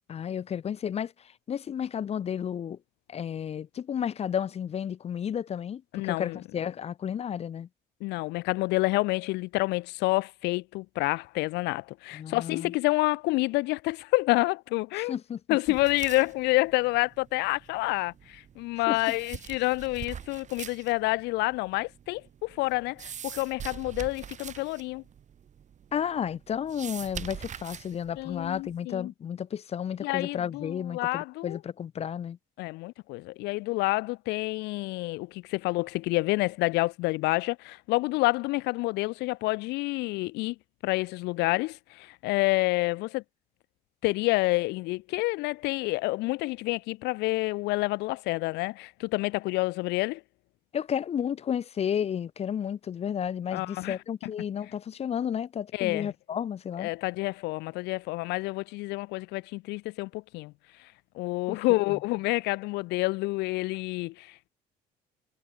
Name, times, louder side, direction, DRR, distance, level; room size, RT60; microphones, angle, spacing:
voice 1, 0.1-2.8 3.1-7.7 12.1-12.7 15.0-15.4 18.8-19.1 25.9-32.4 50.7-56.9 61.5-61.6 61.9-62.0, left 8 dB, 40° left, 0.6 m, -32 dB
voice 2, 5.9-6.4 8.0-15.2 15.5-25.0 28.2-29.1 30.0-31.6 32.6-40.6 40.8-43.2 44.0-50.2 53.5-54.0 55.7-56.1 56.8-60.5 61.2-64.5, left 22 dB, 90° left, 0.5 m, -28 dB
sound 1, 15.7-28.8, right 8 dB, 45° right, 2.6 m, -44 dB
cardioid pair, 110°, 17 cm